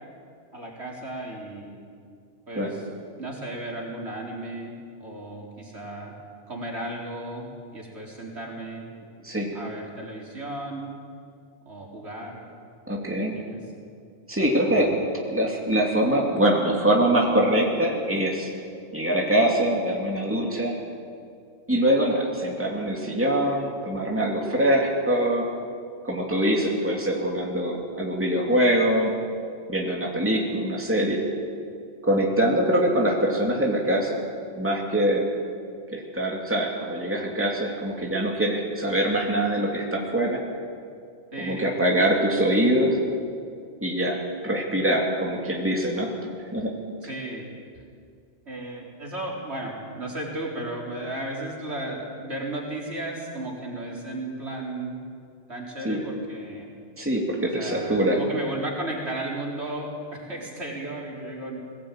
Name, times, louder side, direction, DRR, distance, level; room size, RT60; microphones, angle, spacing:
voice 1, 0.5-1.8 2.5-2.8 3.2-4.7 5.0-6.1 6.5-8.8 9.5-10.9 11.7-12.4 13.2-13.6 14.6-15.0 41.3-41.7 47.0-47.5 48.5-55.0 55.5-56.7 57.4-61.6, right 1 dB, 75° right, -2 dB, 4.2 m, -34 dB
voice 2, 9.2-9.6 12.9-13.4 14.3-14.9 15.3-18.5 18.9-20.7 21.7-25.5 26.0-29.1 29.7-31.2 32.0-34.2 34.5-35.2 35.9-40.4 41.4-43.0 43.8-46.1 46.5-46.7 55.8-56.0 57.0-58.2, right 1 dB, 10° right, -1 dB, 2.8 m, -23 dB
21.0 x 17.0 x 9.0 m, 2.2 s
omnidirectional pair, 1.1 m